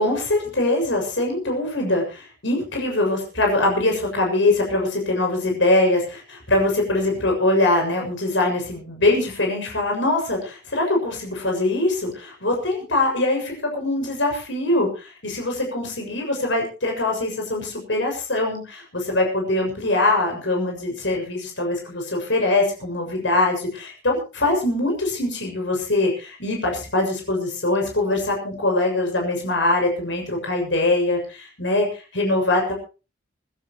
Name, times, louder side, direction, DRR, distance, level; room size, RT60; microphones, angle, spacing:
voice 1, 0.0-31.9 32.1-32.7, left 2 dB, 85° left, 1 dB, 6.8 m, -22 dB
25.5 x 13.0 x 3.1 m, 0.33 s
head